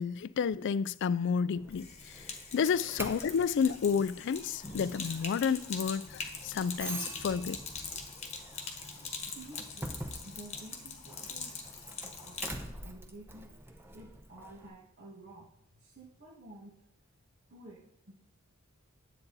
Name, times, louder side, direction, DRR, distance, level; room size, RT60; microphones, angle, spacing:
voice 1, 0.0-2.3 2.5-7.6, left 6 dB, 60° left, 0.4 m, -31 dB
Doorbell, 1.5-14.7, right 1 dB, 10° right, 0.8 m, -46 dB
Sink (filling or washing), 1.7-12.6, left 5 dB, 30° left, 1.2 m, -43 dB
voice 2, 9.4-11.6 12.0-13.5 13.9-15.5 15.8-16.7 17.5-18.1, right 1 dB, 55° right, 1.7 m, -52 dB
9.7 x 8.1 x 4.0 m
head